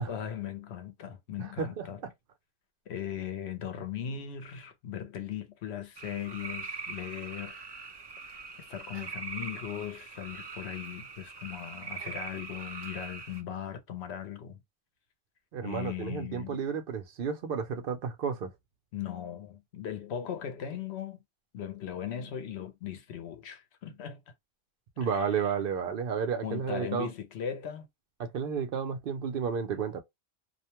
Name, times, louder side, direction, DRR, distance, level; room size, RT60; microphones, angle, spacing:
voice 1, 0.1-2.0 2.9-7.6 8.3-14.6 15.6-16.6 18.9-21.2 21.5-24.2 25.1-25.3 26.4-27.9, left 9 dB, 90° left, 0.9 m, -38 dB
voice 2, 1.4-1.9 15.5-18.5 25.0-27.1 28.2-30.0, right 6 dB, 65° right, 0.7 m, -32 dB
sound 1, 6.0-13.4, right 4 dB, 40° right, 0.4 m, -42 dB
2.4 x 2.1 x 2.8 m
omnidirectional pair, 1.1 m